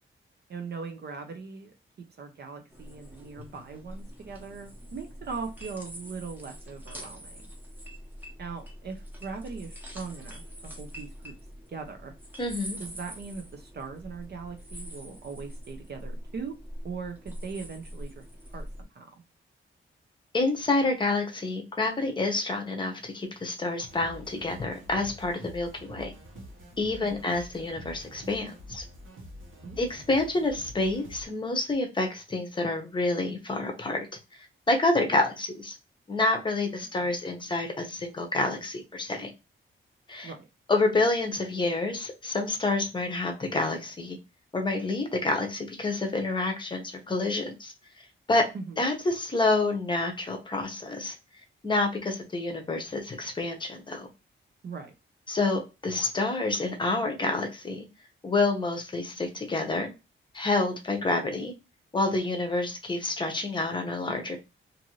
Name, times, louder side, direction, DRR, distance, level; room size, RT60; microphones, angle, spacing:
voice 1, 0.5-1.7 2.2-7.4 8.4-11.3 11.7-12.1 12.8-16.6 16.8-18.2 18.5-19.1 27.0-27.2 29.6-29.8 37.0-37.1 40.2-40.4 48.5-48.8 54.6-54.9, right 5 dB, 50° right, 4 dB, 0.6 m, -40 dB
sound 1, 2.7-18.8, equal, 10° right, 0.8 m, -44 dB
voice 2, 12.4-12.8 20.3-26.1 26.8-28.8 29.8-34.0 34.7-35.7 36.1-39.3 40.1-40.3 40.7-44.2 44.5-47.7 48.3-48.4 48.8-51.1 51.6-54.1 55.3-57.9 58.2-59.9 60.3-61.5 61.9-64.4, left 2 dB, 20° left, 3 dB, 0.7 m, -28 dB
sound 2, 23.8-31.3, equal, 70° right, 1.1 m, -46 dB
2.6 x 2.5 x 2.9 m, 0.26 s
wide cardioid pair, 160°, 21 cm